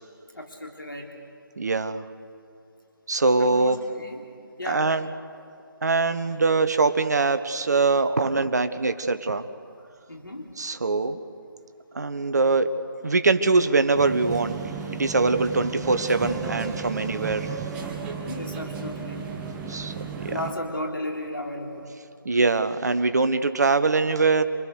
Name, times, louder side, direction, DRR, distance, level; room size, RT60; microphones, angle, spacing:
voice 1, 0.3-1.1 3.4-4.3 4.6-4.9 10.1-10.5 18.2-19.3 20.2-21.9, left 1 dB, 70° left, 1 dB, 3.3 m, -34 dB
voice 2, 1.6-2.0 3.1-3.8 4.7-5.1 5.8-9.5 10.6-11.2 11.9-12.7 13.0-14.6 14.9-17.5 19.7-19.9 20.2-20.4 22.2-24.4, right 3 dB, 50° right, 11 dB, 1.2 m, -22 dB
sound 1, 13.9-20.5, right 5 dB, 10° right, 1.1 m, -34 dB
28.0 x 22.0 x 6.6 m, 2.4 s
figure-of-eight pair, 150°, 12 cm